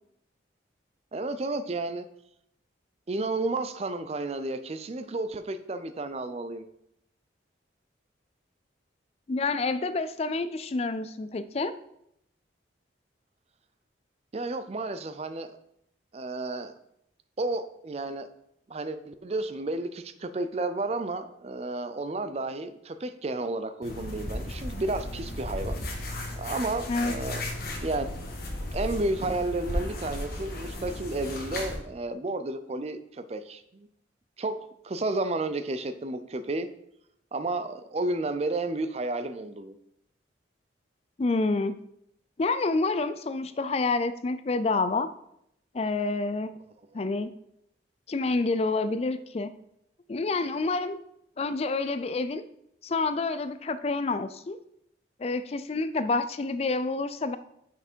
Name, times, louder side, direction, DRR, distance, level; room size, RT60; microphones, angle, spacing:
voice 1, 1.1-2.1 3.1-6.6 14.3-15.5 16.1-16.7 17.4-18.3 18.7-25.9 26.3-27.4 27.8-28.1 28.7-33.9 34.4-36.7 37.3-39.8, right 2 dB, 35° right, 10 dB, 0.4 m, -32 dB
voice 2, 9.3-11.7 26.9-27.1 41.2-41.8 42.4-45.1 45.7-46.5 46.9-47.3 48.1-49.5 50.1-51.0 51.4-52.4 52.8-54.6 55.2-57.4, left 3 dB, 35° left, 12 dB, 0.3 m, -28 dB
sound 1, 23.8-31.8, left 1 dB, 50° left, 1.4 m, -35 dB
6.0 x 5.7 x 4.4 m, 0.77 s
head